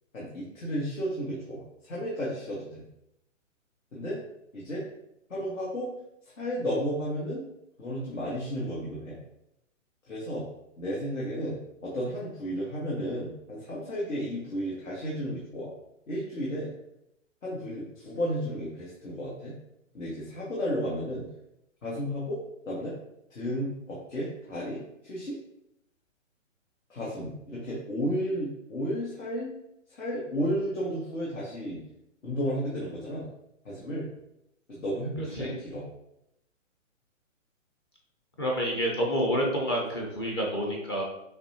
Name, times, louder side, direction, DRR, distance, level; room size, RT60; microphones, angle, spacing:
voice 1, 0.1-2.8 3.9-4.2 4.5-4.8 5.3-5.9 6.4-7.4 7.8-9.2 10.1-10.4 10.8-11.6 11.8-15.7 16.1-16.7 17.4-19.5 19.9-21.2 21.8-22.4 22.6-22.9 23.3-25.4 26.9-29.5 29.9-31.8 32.2-33.3 33.6-34.1 34.7-35.8, equal, 85° left, -6 dB, 1.5 m, -33 dB
voice 2, 35.2-35.5 38.4-41.0, equal, 20° left, -1 dB, 0.4 m, -28 dB
6.5 x 2.3 x 2.7 m, 0.82 s
hypercardioid pair, 140°, 39 cm